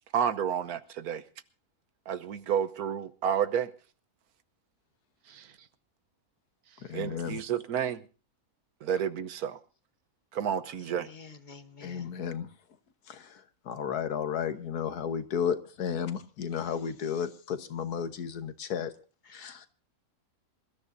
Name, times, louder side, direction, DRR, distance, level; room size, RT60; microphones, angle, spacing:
voice 1, 0.1-1.2 2.1-3.7 5.3-5.5 6.9-8.0 8.8-9.6 10.3-11.1, right 8 dB, 70° right, 1.4 m, -30 dB
voice 2, 6.8-7.4 11.8-12.5 13.1-18.9 19.3-19.7, left 7 dB, 80° left, 1.7 m, -33 dB
voice 3, 10.8-12.2 19.3-19.7, left 4 dB, 35° left, 1.0 m, -50 dB
26.5 x 13.5 x 2.6 m
omnidirectional pair, 1.6 m